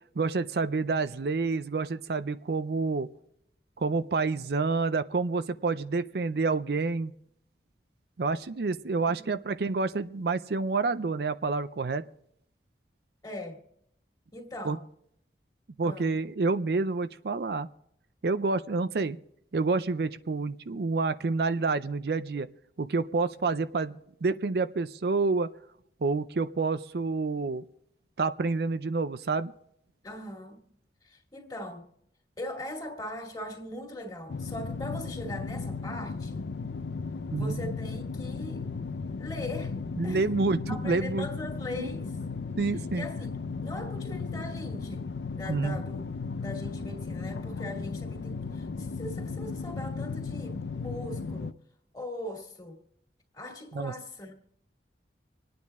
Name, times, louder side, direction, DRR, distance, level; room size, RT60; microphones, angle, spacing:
voice 1, 0.2-3.1 3.8-7.1 8.2-12.0 14.6-14.8 15.8-17.7 18.2-19.2 19.5-22.5 22.8-25.5 26.0-27.6 28.2-29.5 37.3-37.6 40.0-41.3 41.8-41.9 42.6-43.1 45.5-45.8 53.7-53.9, right 4 dB, 60° right, 0.5 m, -28 dB
voice 2, 8.9-9.4 13.2-13.6 14.3-14.9 15.8-16.2 30.0-30.6 31.0-31.9 32.4-36.5 37.4-38.7 39.2-39.7 40.0-40.2 40.7-42.1 42.7-45.1 45.4-51.6 51.9-52.8 53.3-54.3, left 1 dB, 20° left, 2.5 m, -40 dB
sound 1, 34.3-51.5, left 4 dB, 75° left, 0.5 m, -35 dB
26.5 x 9.5 x 3.6 m
head